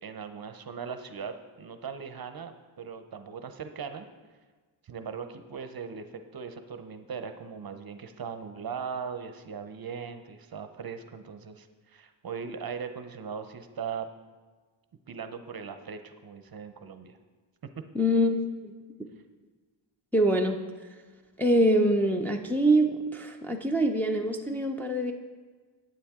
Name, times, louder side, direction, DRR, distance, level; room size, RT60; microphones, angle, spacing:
voice 1, 0.0-4.1 4.8-14.1 15.1-17.2, right 6 dB, 45° right, 8 dB, 0.7 m, -39 dB
voice 2, 17.9-18.4 19.0-19.1 20.1-20.6 21.4-25.1, right 1 dB, 5° left, 1 dB, 0.5 m, -24 dB
10.0 x 8.9 x 3.6 m, 1.4 s
wide cardioid pair, 115°, 50 cm